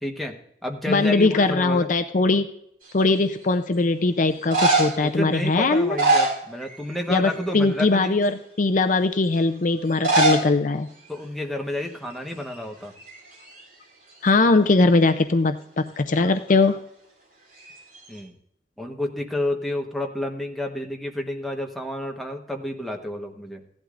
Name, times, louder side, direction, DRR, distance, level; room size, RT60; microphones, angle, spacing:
voice 1, 0.0-0.3 0.6-1.9 5.0-8.2 11.1-12.9 18.1-18.3 18.8-23.6, left 1 dB, ahead, 1 dB, 1.2 m, -30 dB
voice 2, 0.9-2.5 2.9-6.0 7.1-10.9 14.2-16.8, left 3 dB, 45° left, 8 dB, 0.5 m, -20 dB
sound 1, 2.8-3.3 4.3-5.1 5.7-7.0 7.2-7.6 8.2-8.3 9.9-10.5 10.8-10.9 11.0-11.1 11.9-12.1 12.4-13.6 17.6-18.2, right 2 dB, 50° right, 3.4 m, -23 dB
16.0 x 11.5 x 2.5 m, 0.73 s
head